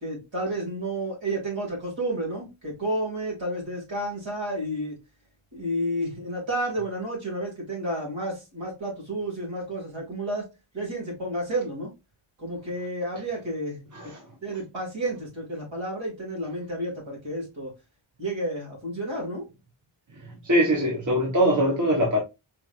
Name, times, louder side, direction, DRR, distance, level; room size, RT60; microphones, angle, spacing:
voice 1, 0.0-5.0 5.5-10.5 10.7-11.9 12.4-13.9 14.4-17.7 18.2-19.5, right 1 dB, 65° right, 2.6 m, -31 dB
voice 2, 20.4-22.2, equal, 35° right, 1.2 m, -22 dB
4.6 x 3.2 x 2.5 m
wide cardioid pair, 145°, 49 cm